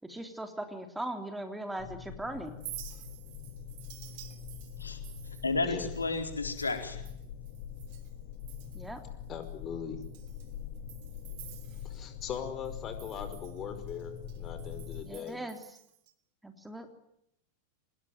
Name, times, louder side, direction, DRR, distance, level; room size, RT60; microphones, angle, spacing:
voice 1, 0.0-2.6 8.7-9.0 15.0-15.8 16.4-16.9, right 1 dB, 5° right, 6 dB, 3.3 m, -39 dB
sound 1, 1.8-15.0, left 8 dB, 45° left, 2.7 m, -43 dB
Chink clink, 2.5-8.1 8.4-9.0 9.4-9.5 10.0-12.4 12.6-16.1, right 15 dB, 50° right, 3.1 m, -51 dB
voice 2, 5.4-7.0, left 3 dB, 80° left, 5 dB, 4.2 m, -32 dB
voice 3, 9.3-10.0 11.8-15.4, left 8 dB, 30° left, 9 dB, 5.2 m, -40 dB
24.5 x 21.0 x 9.3 m, 0.77 s
figure-of-eight pair, 90°, 0 cm